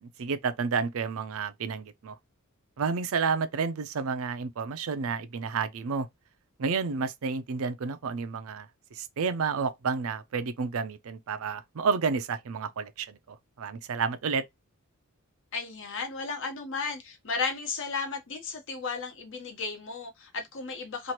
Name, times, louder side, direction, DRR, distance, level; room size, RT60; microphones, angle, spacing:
voice 1, 0.0-2.2 2.8-6.1 6.6-8.7 8.9-13.2 13.6-14.4, right 5 dB, 65° right, 0.5 m, -30 dB
voice 2, 15.5-21.1, left 4 dB, 60° left, 1.0 m, -34 dB
3.0 x 2.5 x 2.8 m
head